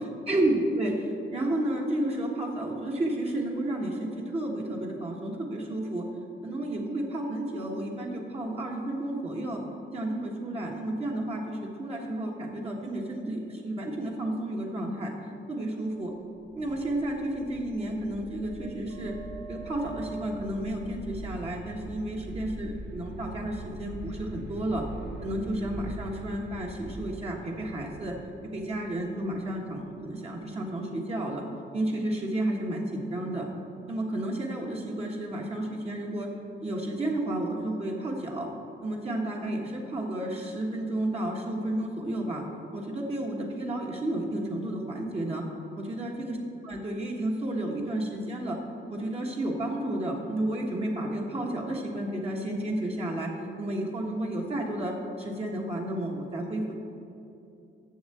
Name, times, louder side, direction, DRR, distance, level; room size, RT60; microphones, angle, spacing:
voice 1, 0.3-6.1 6.4-9.6 9.9-15.1 15.5-16.1 16.5-19.1 19.5-24.8 25.2-28.2 28.5-31.4 31.7-33.5 33.9-36.3 36.6-38.5 38.8-42.4 42.7-45.4 45.9-46.4 46.6-48.6 48.9-53.3 53.6-56.8, right 1 dB, 30° right, -1 dB, 1.3 m, -31 dB
sound 1, 16.4-30.1, right 1 dB, 60° right, 1.0 m, -42 dB
7.2 x 7.2 x 7.6 m, 2.7 s
cardioid pair, 105°, 20 cm